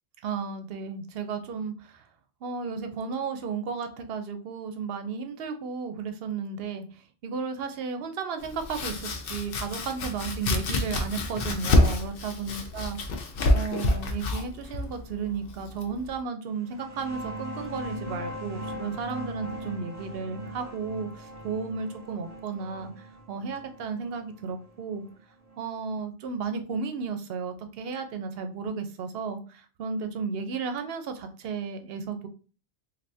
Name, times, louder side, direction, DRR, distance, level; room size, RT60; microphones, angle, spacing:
voice 1, 0.2-2.1 2.4-13.0 13.5-25.1 25.6-32.3, right 5 dB, 65° right, 7 dB, 0.7 m, -34 dB
Domestic sounds home sounds, 8.4-16.1, left 1 dB, 65° left, 0.7 m, -27 dB
sound 1, 16.6-25.9, equal, 40° right, 0.9 m, -40 dB
3.3 x 2.7 x 2.6 m, 0.36 s
omnidirectional pair, 1.2 m